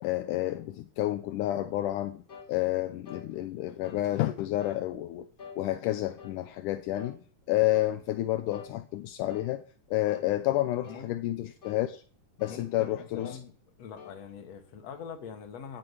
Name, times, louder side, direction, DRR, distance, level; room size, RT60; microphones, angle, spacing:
voice 1, 0.0-2.2 2.5-5.3 5.6-7.2 7.5-9.6 9.9-12.0 12.4-13.4, left 15 dB, 80° left, 2.3 m, -30 dB
sound 1, 2.3-2.5 3.1-3.3 3.8-4.1 4.6-4.8 5.4-5.6 6.2-6.4 7.0-7.2 7.7-8.0 8.5-8.8 9.3-9.5 10.1-10.3 10.8-11.1 11.6-11.8 12.4-12.6 13.2-13.4 14.0-14.2, left 5 dB, 30° left, 2.1 m, -47 dB
voice 2, 12.5-13.5 13.8-15.8, left 7 dB, 55° left, 2.8 m, -43 dB
16.5 x 8.8 x 5.6 m
omnidirectional pair, 3.7 m